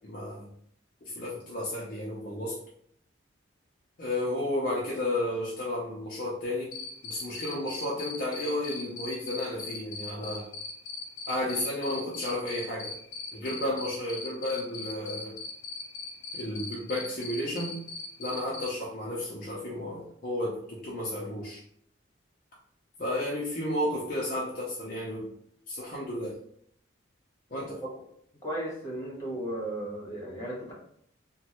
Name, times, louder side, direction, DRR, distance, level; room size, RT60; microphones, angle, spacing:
voice 1, 0.0-0.5 1.0-2.6 4.0-6.8 7.0-10.5 11.3-12.9 13.3-15.4 16.3-17.8 18.2-21.6 23.0-25.3 25.7-26.4 27.5-27.8, left 1 dB, 45° left, -4 dB, 0.5 m, -32 dB
Cricket, 6.7-18.7, left 4 dB, 85° left, 0.7 m, -38 dB
voice 2, 28.4-30.7, right 1 dB, 20° left, -5 dB, 1.0 m, -35 dB
3.0 x 2.2 x 2.9 m, 0.67 s
head